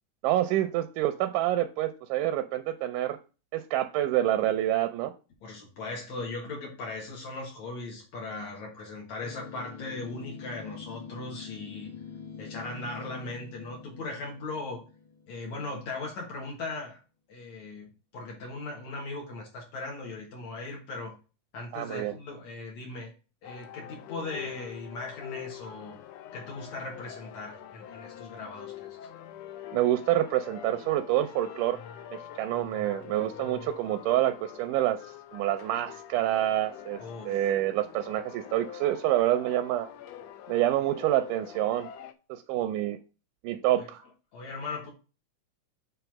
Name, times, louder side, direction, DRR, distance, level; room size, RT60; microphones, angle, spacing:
voice 1, 0.2-3.2 3.5-5.1 21.7-22.2 29.7-31.8 32.1-35.0 35.3-39.9 40.5-41.9 42.3-43.0 43.4-44.0, right 13 dB, 90° right, 7 dB, 2.1 m, -27 dB
voice 2, 5.4-11.9 12.4-14.8 15.3-17.0 17.3-21.2 21.5-23.1 23.4-26.0 26.3-29.0 37.0-37.4 43.8-43.9 44.3-44.9, left 3 dB, 65° left, -1 dB, 2.7 m, -38 dB
sound 1, 9.2-15.8, left 6 dB, 50° left, 2.0 m, -45 dB
sound 2, 23.4-42.1, left 10 dB, 80° left, 1.5 m, -45 dB
7.1 x 3.4 x 5.8 m, 0.32 s
omnidirectional pair, 3.6 m